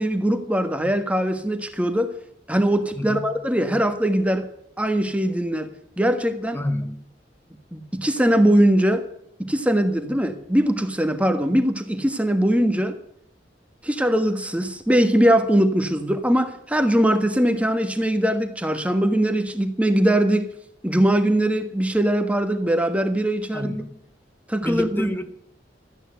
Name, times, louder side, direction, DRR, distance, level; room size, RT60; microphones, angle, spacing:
voice 1, 0.0-2.1 2.5-4.5 4.8-5.7 6.0-6.6 7.7-9.0 9.4-13.0 13.8-20.5 20.8-23.7 24.5-25.1, right 1 dB, 10° right, 1.4 m, -21 dB
voice 2, 2.9-3.3 6.5-7.0 23.5-24.0 24.6-25.3, left 1 dB, 10° left, 0.9 m, -29 dB
13.5 x 9.0 x 7.8 m
head